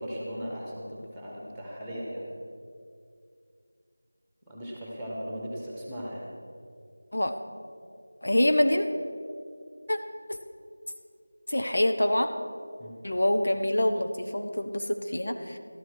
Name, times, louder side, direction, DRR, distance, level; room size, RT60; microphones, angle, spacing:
voice 1, 0.0-2.2 4.5-6.3 12.8-13.0, equal, ahead, -4 dB, 1.6 m, -37 dB
voice 2, 8.2-8.9 9.9-10.0 10.3-10.4 11.5-12.3 13.0-15.6, left 1 dB, 75° left, 6 dB, 1.0 m, -25 dB
13.0 x 12.0 x 4.8 m, 2.3 s
figure-of-eight pair, 175°, 0 cm